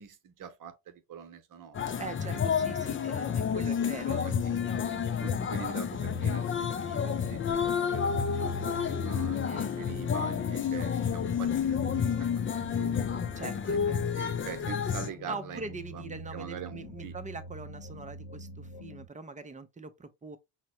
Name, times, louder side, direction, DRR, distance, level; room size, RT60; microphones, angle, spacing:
voice 1, 0.0-2.7 4.2-4.3 5.2-13.1 14.1-17.1, right 9 dB, 45° right, 0.9 m, -44 dB
sound 1, 1.7-15.1, left 7 dB, 30° left, 0.5 m, -30 dB
voice 2, 2.0-4.2 9.4-9.7 13.4-14.0 15.3-20.4, right 3 dB, 15° right, 0.7 m, -42 dB
sound 2, 4.4-19.1, left 1 dB, 80° left, 0.8 m, -46 dB
5.6 x 2.1 x 2.9 m
hypercardioid pair, 55°, 45 cm